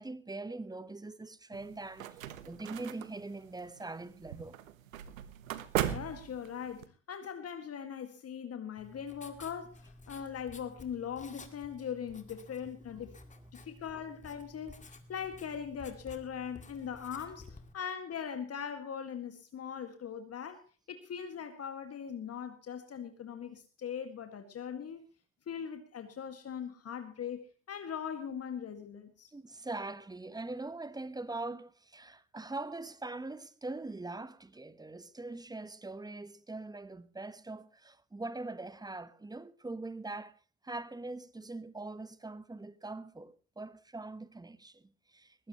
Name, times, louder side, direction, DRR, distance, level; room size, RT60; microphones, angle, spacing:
voice 1, 0.0-4.6 13.0-13.1 29.3-40.4 40.6-45.5, right 2 dB, 10° right, 1.1 m, -42 dB
sound 1, 1.5-6.9, right 11 dB, 80° right, 1.3 m, -39 dB
voice 2, 5.9-13.2 13.5-20.6 20.9-25.0 25.5-29.3, left 8 dB, 35° left, 2.1 m, -40 dB
Writing, 8.8-17.7, left 2 dB, 20° left, 2.1 m, -53 dB
21.0 x 16.0 x 3.1 m
hypercardioid pair, 70°, 39 cm